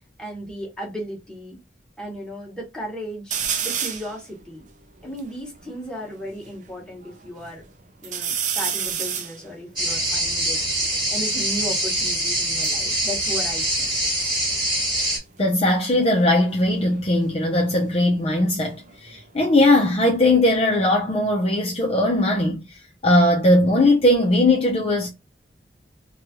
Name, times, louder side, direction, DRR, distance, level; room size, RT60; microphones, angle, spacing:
voice 1, 0.2-1.6 2.0-4.6 5.0-7.6 8.0-10.6 11.1-14.0, equal, 5° left, 1.1 m, -35 dB
sound 1, 3.3-4.1 4.7-4.8 5.0-6.5 7.0-7.6 8.0-11.4 12.3-14.3 14.5-15.0 16.6-19.2 19.6-20.4, right 7 dB, 45° right, 0.5 m, -32 dB
sound 2, 9.8-15.2, right 1 dB, 25° right, 1.2 m, -24 dB
voice 2, 15.4-25.1, left 1 dB, 35° left, 0.6 m, -19 dB
3.1 x 2.3 x 2.8 m
head